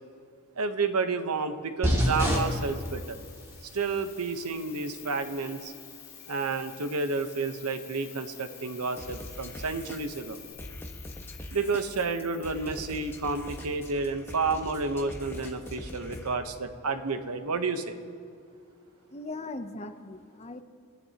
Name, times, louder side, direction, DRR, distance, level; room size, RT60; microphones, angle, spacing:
voice 1, 0.6-3.2 3.7-5.7 6.3-10.4 11.5-18.0, right 4 dB, 85° right, 8 dB, 1.0 m, -30 dB
sound 1, 1.8-10.5, equal, 15° right, 2.4 m, -34 dB
Cricket, 1.9-13.9, left 12 dB, 90° left, 1.6 m, -50 dB
sound 2, 9.0-16.3, left 1 dB, 10° left, 1.1 m, -42 dB
voice 2, 19.1-20.6, left 2 dB, 30° left, 8 dB, 0.7 m, -39 dB
29.0 x 14.0 x 2.9 m, 2.3 s
head